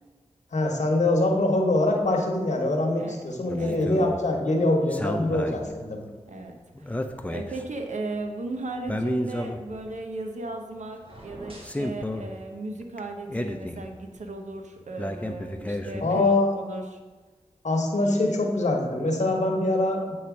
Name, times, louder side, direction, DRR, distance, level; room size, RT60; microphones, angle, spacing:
voice 1, 0.5-6.1 16.0-16.6 17.6-20.1, left 2 dB, 80° left, 1 dB, 1.0 m, -24 dB
sound 1, 3.5-16.2, left 1 dB, 10° left, 0.6 m, -33 dB
voice 2, 3.5-3.9 6.3-7.0 7.3-17.0, right 2 dB, 85° right, 3 dB, 0.7 m, -36 dB
sound 2, 11.0-11.9, right 1 dB, 50° right, 1.6 m, -44 dB
8.0 x 3.2 x 5.9 m, 1.3 s
cardioid pair, 45°, 12 cm